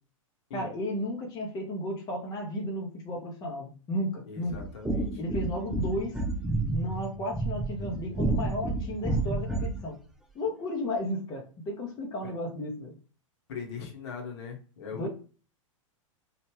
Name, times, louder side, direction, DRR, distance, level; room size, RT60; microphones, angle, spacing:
voice 1, 0.5-4.6 5.2-6.2 6.7-10.0 10.3-12.9 14.9-15.1, left 1 dB, 25° left, 0 dB, 0.7 m, -33 dB
voice 2, 4.2-5.2 12.2-12.3 13.5-15.1, left 5 dB, 55° left, 1 dB, 1.0 m, -40 dB
sound 1, 4.5-9.9, right 2 dB, 5° right, 0.3 m, -30 dB
3.1 x 2.4 x 3.1 m, 0.37 s
figure-of-eight pair, 100°, 17 cm